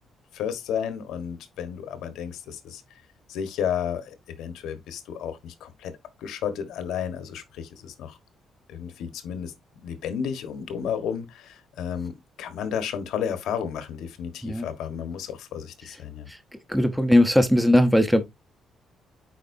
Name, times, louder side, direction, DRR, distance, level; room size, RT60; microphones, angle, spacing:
voice 1, 0.3-2.8 3.3-5.9 6.2-8.2 8.7-9.5 9.8-16.3, left 8 dB, 90° left, 1.3 m, -32 dB
voice 2, 16.7-18.3, left 1 dB, ahead, 0.8 m, -19 dB
9.1 x 4.4 x 2.6 m
cardioid pair, 145°, 0 cm